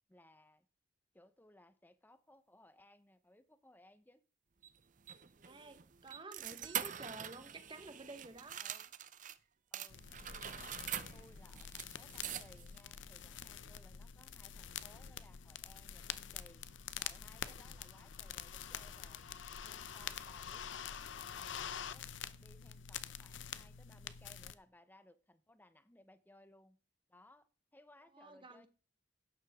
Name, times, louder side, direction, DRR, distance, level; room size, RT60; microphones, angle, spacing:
voice 1, 0.1-0.7 1.1-4.2 8.6-8.9 9.7-10.8 11.1-16.7 16.9-19.3 19.6-26.8 27.1-28.7, left 1 dB, 10° left, 0.8 m, -64 dB
sound 1, 4.6-9.4 9.7-12.8, right 10 dB, 45° right, 0.6 m, -45 dB
voice 2, 5.4-8.6 17.4-17.6 28.1-28.7, right 2 dB, 25° right, 1.2 m, -52 dB
sound 2, 9.9-24.5, left 8 dB, 80° left, 0.7 m, -46 dB
12.0 x 9.7 x 3.6 m
head